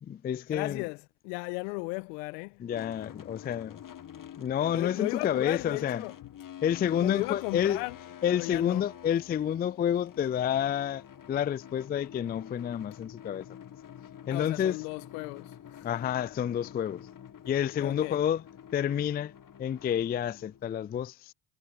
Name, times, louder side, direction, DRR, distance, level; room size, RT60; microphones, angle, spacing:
voice 1, 0.0-0.8 2.6-3.8 4.4-6.0 6.6-7.8 8.2-11.0 11.3-13.5 14.3-14.8 15.8-17.1 17.5-18.4 18.7-19.3 19.6-21.3, left 9 dB, 20° left, 0.4 m, -29 dB
voice 2, 0.5-2.6 4.7-6.1 7.0-8.0 8.3-8.8 14.3-15.9 17.8-18.2, left 29 dB, 75° left, 1.5 m, -35 dB
sound 1, 2.7-20.6, left 10 dB, 40° left, 2.2 m, -48 dB
hypercardioid pair, 60°, 49 cm